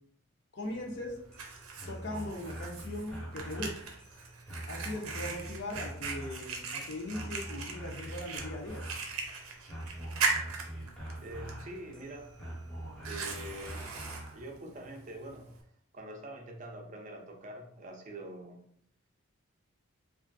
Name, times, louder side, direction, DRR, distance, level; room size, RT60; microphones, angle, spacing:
voice 1, 0.5-1.2 1.9-3.7 4.7-8.8, left 1 dB, 55° left, 2 dB, 0.6 m, -39 dB
Fire, 0.6-15.6, right 4 dB, 90° right, 0.5 m, -40 dB
sound 1, 1.2-14.4, right 1 dB, 5° left, 0.6 m, -44 dB
sound 2, 5.9-10.2 10.7-10.9 11.8-11.9 12.1-14.2, left 1 dB, 90° left, 1.1 m, -58 dB
voice 2, 10.8-12.3 13.0-13.9 14.3-15.6 15.9-18.6, right 1 dB, 35° right, 2 dB, 0.4 m, -45 dB
3.0 x 2.3 x 2.5 m, 0.67 s
head